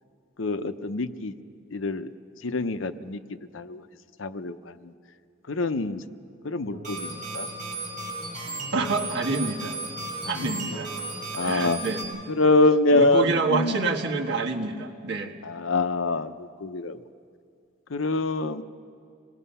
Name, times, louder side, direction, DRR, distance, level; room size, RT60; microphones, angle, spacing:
voice 1, 0.4-1.3 1.7-2.1 2.4-3.2 3.5-3.8 4.2-4.7 5.5-6.0 6.4-7.5 10.2-10.6 11.3-11.8 12.3-13.8 15.4-17.0 17.9-18.6, left 2 dB, 85° left, 11 dB, 0.8 m, -25 dB
sound 1, 6.7-12.0, right 2 dB, 40° right, 6.6 m, -35 dB
voice 2, 8.7-9.8 10.3-10.9 11.4-12.2 12.9-15.3, right 3 dB, 60° right, 0 dB, 1.7 m, -27 dB
27.0 x 19.5 x 5.6 m, 2.2 s
head